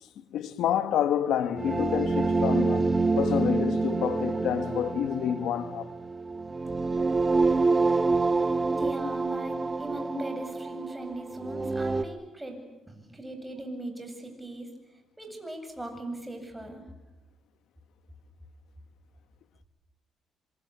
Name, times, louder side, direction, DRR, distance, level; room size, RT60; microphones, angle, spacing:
voice 1, 0.2-5.9, left 9 dB, 80° left, 1.8 m, -28 dB
sound 1, 1.6-12.0, right 3 dB, 25° right, 1.4 m, -27 dB
voice 2, 8.7-12.6 12.9-14.7 15.2-16.8, right 1 dB, 10° right, 8.0 m, -39 dB
27.0 x 26.0 x 8.4 m
cardioid pair, 90°, 0 cm